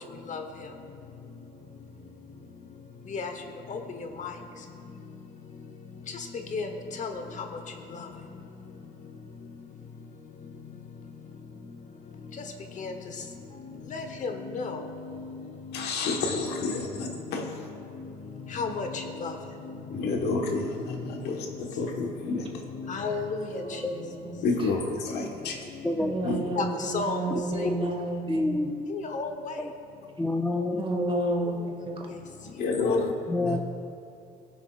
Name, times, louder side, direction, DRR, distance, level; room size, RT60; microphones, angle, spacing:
voice 1, 13.9-14.7 18.5-18.9 19.2-19.3 22.9-23.4 26.6-26.7 26.9-27.2 29.1-29.3 32.9-33.0, left 4 dB, 45° left, 5 dB, 1.0 m, -30 dB
voice 2, 15.7-17.4 19.9-22.5 24.4-25.6 26.2-26.4 32.6-33.1 33.4-33.6, left 3 dB, 75° left, 2 dB, 1.3 m, -29 dB
voice 3, 23.5-24.4 26.0-28.6 30.7-31.6 31.9-32.1, right 2 dB, 30° right, 2 dB, 1.6 m, -31 dB
voice 4, 27.3-27.9 28.3-28.9 29.6-29.7 30.2-31.1 33.3-33.6, left 2 dB, 10° left, 2 dB, 0.5 m, -28 dB
18.5 x 7.1 x 2.4 m, 2.5 s
cardioid pair, 110°, 17 cm